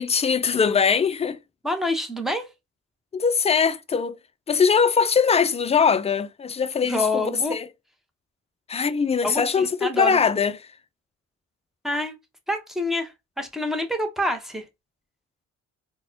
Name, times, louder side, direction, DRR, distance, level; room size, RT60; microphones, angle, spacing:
voice 1, 0.0-1.4 3.1-4.2 4.5-7.7 8.7-10.6, left 6 dB, 20° left, 0.4 m, -21 dB
voice 2, 1.6-2.5 6.8-7.6 9.2-10.2 11.8-12.2 12.5-14.7, left 1 dB, ahead, 0.8 m, -27 dB
4.0 x 2.2 x 2.7 m
cardioid pair, 90°, 30 cm